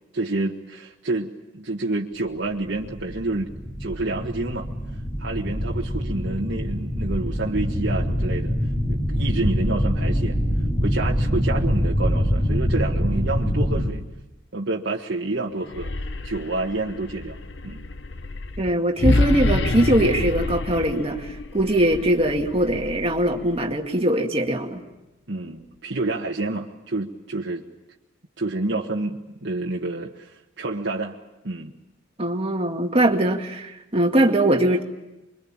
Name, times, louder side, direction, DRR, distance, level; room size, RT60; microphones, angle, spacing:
voice 1, 0.1-3.5 3.8-4.7 5.2-8.5 8.9-10.4 10.8-14.0 14.5-15.9 16.2-17.8 25.3-27.6 28.4-31.1 31.4-31.7, right 2 dB, 60° right, -2 dB, 1.6 m, -28 dB
sound 1, 2.5-13.9, equal, 20° left, 5.4 m, -24 dB
sound 2, 15.6-23.7, left 2 dB, 60° left, 1.1 m, -28 dB
voice 2, 18.6-24.8 32.2-34.8, right 1 dB, 30° right, 2 dB, 2.2 m, -21 dB
25.0 x 23.5 x 8.9 m, 0.99 s
head